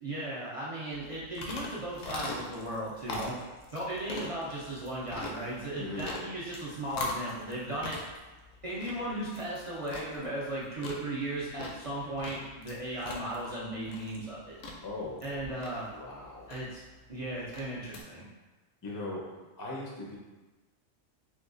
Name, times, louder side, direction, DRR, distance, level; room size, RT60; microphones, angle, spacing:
voice 1, 0.0-3.4 3.7-8.0 8.6-14.6 15.2-15.9 16.5-16.8 17.1-18.3, right 1 dB, 55° right, -8 dB, 0.3 m, -36 dB
sound 1, 0.9-18.0, left 2 dB, 75° left, 0.9 m, -42 dB
voice 2, 14.8-15.2 15.9-16.5 18.8-20.2, left 2 dB, 30° left, -4 dB, 0.3 m, -39 dB
4.4 x 2.3 x 2.4 m, 1.2 s
omnidirectional pair, 1.3 m